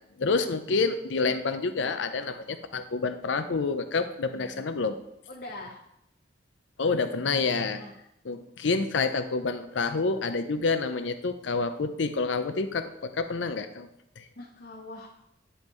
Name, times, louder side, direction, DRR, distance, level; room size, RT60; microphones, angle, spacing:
voice 1, 0.2-5.0 6.8-7.8 8.2-13.9 14.2-14.3, left 4 dB, 85° left, 10 dB, 0.6 m, -28 dB
voice 2, 4.3-4.8 5.3-5.8 7.7-7.9 14.4-15.2, left 2 dB, 60° left, -3 dB, 1.1 m, -43 dB
10.0 x 5.4 x 3.1 m, 0.80 s
head